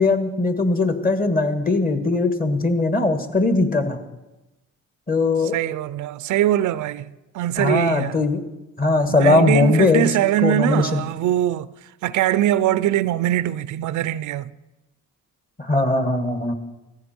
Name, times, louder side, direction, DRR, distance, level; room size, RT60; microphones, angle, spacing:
voice 1, 0.0-4.0 5.1-5.6 7.6-8.4 8.8-10.1 10.4-11.0 15.6-16.5, left 3 dB, 30° left, 1.9 m, -19 dB
voice 2, 5.5-8.2 9.1-11.7 12.0-14.5, right 13 dB, 80° right, 0.5 m, -22 dB
17.0 x 14.5 x 4.5 m
cardioid pair, 90°, 30 cm